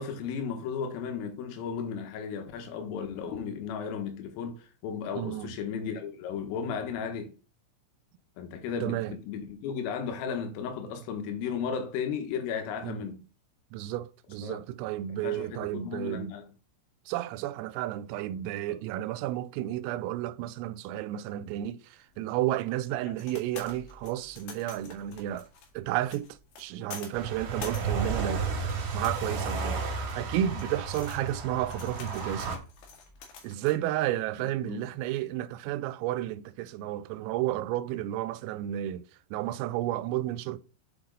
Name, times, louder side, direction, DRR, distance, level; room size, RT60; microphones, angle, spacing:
voice 1, 0.0-7.3 8.4-13.2 14.4-14.6 15.1-16.4 18.7-18.8 34.6-34.8, left 6 dB, 80° left, 3.8 m, -35 dB
voice 2, 5.1-5.6 8.8-9.2 12.8-13.0 13.7-16.3 17.1-25.5 25.7-28.5 28.9-32.6 33.4-40.6, right 13 dB, 90° right, 3.3 m, -32 dB
heavy metal parts tumbling around in a plastic box, 22.1-33.8, left 5 dB, 60° left, 3.5 m, -48 dB
sound 1, 27.1-32.6, right 4 dB, 65° right, 3.6 m, -32 dB
7.6 x 6.1 x 3.9 m
omnidirectional pair, 5.9 m